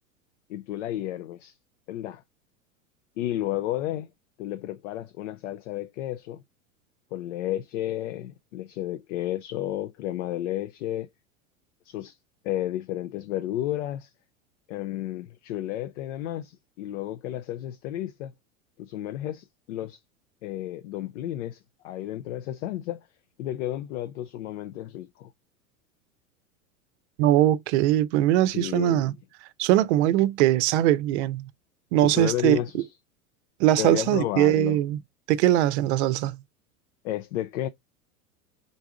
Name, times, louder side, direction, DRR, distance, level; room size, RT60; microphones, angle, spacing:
voice 1, 0.5-1.6 1.9-2.2 3.2-4.1 4.4-6.4 7.1-11.1 11.9-12.2 12.4-14.1 14.7-18.3 18.8-20.0 20.4-23.1 23.4-25.3 28.5-29.0 32.0-32.9 33.8-34.8 37.0-37.7, left 13 dB, 60° left, 0.5 m, -32 dB
voice 2, 27.2-29.1 29.6-31.5 31.9-32.6 33.6-35.0 35.3-36.4, right 14 dB, 50° right, 0.6 m, -21 dB
4.0 x 3.5 x 3.4 m
figure-of-eight pair, 90°, 43 cm